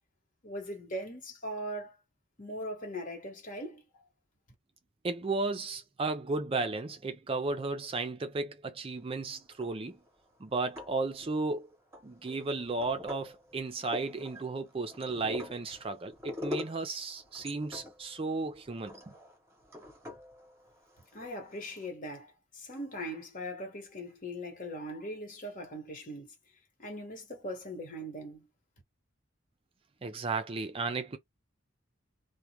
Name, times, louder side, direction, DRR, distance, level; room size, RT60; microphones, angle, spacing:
voice 1, 0.4-1.9 2.4-3.8 21.1-26.3 26.8-28.5, equal, 45° left, 1.2 m, -40 dB
voice 2, 5.0-10.0 10.4-11.7 12.0-19.1 30.0-31.2, right 3 dB, 30° right, 0.4 m, -34 dB
sound 1, 9.4-10.1 10.6-11.5 11.9-21.9, left 2 dB, 15° right, 0.9 m, -45 dB
2.3 x 2.2 x 2.8 m
head